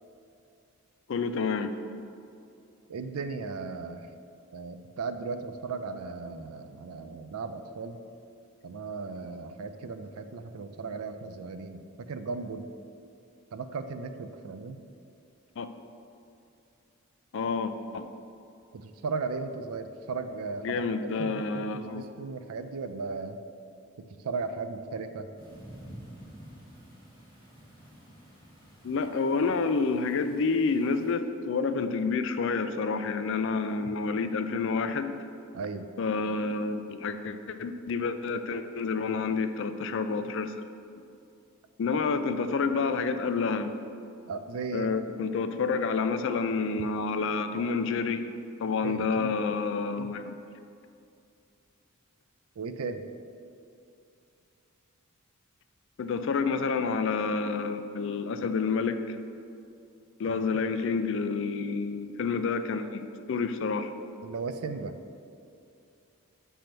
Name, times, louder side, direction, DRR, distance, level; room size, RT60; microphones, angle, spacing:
voice 1, 1.1-1.8 15.6-15.7 17.3-18.1 20.6-22.1 28.8-35.2 36.0-40.5 41.8-43.7 44.7-48.3 48.6-50.4 56.0-59.2 60.2-63.9, left 4 dB, 60° left, 9 dB, 0.4 m, -29 dB
voice 2, 2.9-4.1 4.5-8.0 8.6-12.6 13.5-14.8 18.7-20.8 21.2-23.4 24.0-25.3 35.5-35.9 44.3-44.9 48.8-49.3 50.0-50.1 52.6-53.0 60.3-60.4 64.2-65.0, right 4 dB, 90° right, 9 dB, 0.5 m, -36 dB
sound 1, 25.4-31.1, equal, 20° right, 1.6 m, -50 dB
7.6 x 3.4 x 5.9 m, 2.6 s
head